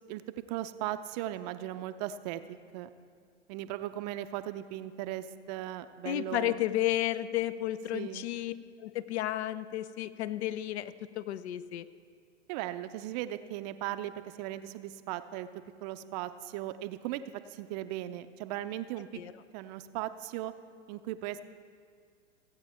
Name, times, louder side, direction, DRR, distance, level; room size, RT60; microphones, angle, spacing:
voice 1, 0.5-2.4 2.7-2.9 3.5-6.6 7.9-8.3 12.5-14.1 14.4-15.5 15.8-17.2 17.5-19.1 19.5-20.5 20.9-21.4, right 14 dB, 35° right, 11 dB, 0.5 m, -37 dB
voice 2, 6.0-11.9 19.1-19.3, left 14 dB, 65° left, 15 dB, 0.6 m, -32 dB
15.5 x 8.9 x 4.4 m, 2.1 s
hypercardioid pair, 105°, 37 cm